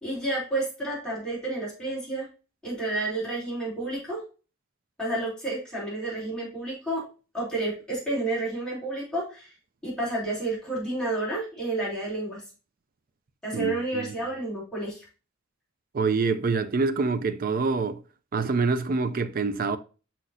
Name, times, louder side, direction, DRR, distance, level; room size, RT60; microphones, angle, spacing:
voice 1, 0.0-2.3 2.6-4.2 5.0-7.0 7.3-9.5 9.8-12.4 13.4-15.1, right 2 dB, 5° left, 3.1 m, -30 dB
voice 2, 13.5-14.2 15.9-18.0 18.3-19.8, right 4 dB, 45° right, 0.4 m, -26 dB
6.0 x 6.0 x 2.6 m
head